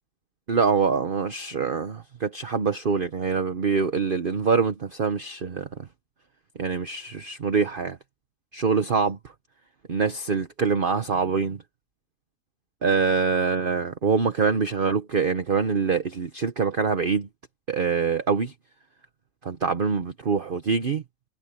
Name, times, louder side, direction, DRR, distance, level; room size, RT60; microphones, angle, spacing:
voice 1, 0.5-5.7 6.6-8.0 8.5-9.2 9.9-11.6 12.8-17.3 17.7-18.5 19.4-21.0, right 5 dB, 40° right, 1.1 m, -24 dB
omnidirectional pair, 1.5 m